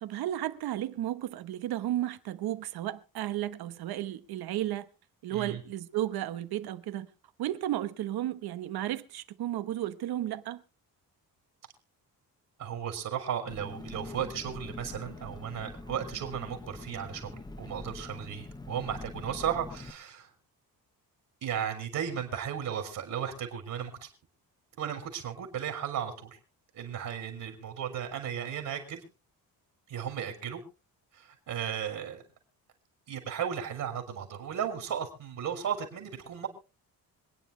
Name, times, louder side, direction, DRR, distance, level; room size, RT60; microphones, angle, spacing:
voice 1, 0.0-4.9 5.2-7.1 7.4-10.6, right 13 dB, 85° right, 1.1 m, -33 dB
voice 2, 5.3-5.6 12.6-20.3 21.4-24.1 24.8-26.4 26.7-29.0 29.9-30.6 31.1-32.2 33.1-36.5, right 8 dB, 60° right, 3.4 m, -35 dB
Engine, 13.5-19.9, left 2 dB, 10° left, 0.8 m, -44 dB
26.0 x 9.5 x 3.3 m
cardioid pair, 175°, 36 cm